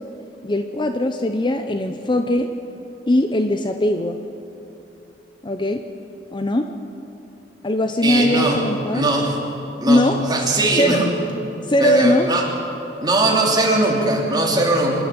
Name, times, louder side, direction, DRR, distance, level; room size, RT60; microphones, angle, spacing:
voice 1, 0.4-2.5 3.1-4.2 5.4-5.8 6.3-6.7 7.6-9.1 9.9-10.2 10.8-11.0 11.7-12.3, left 1 dB, 25° left, 6 dB, 0.7 m, -20 dB
voice 2, 8.0-8.6 8.9-9.4 9.8-11.1 11.8-12.5 13.0-15.0, right 2 dB, 25° right, -1 dB, 3.1 m, -20 dB
26.0 x 11.5 x 8.9 m, 2.9 s
head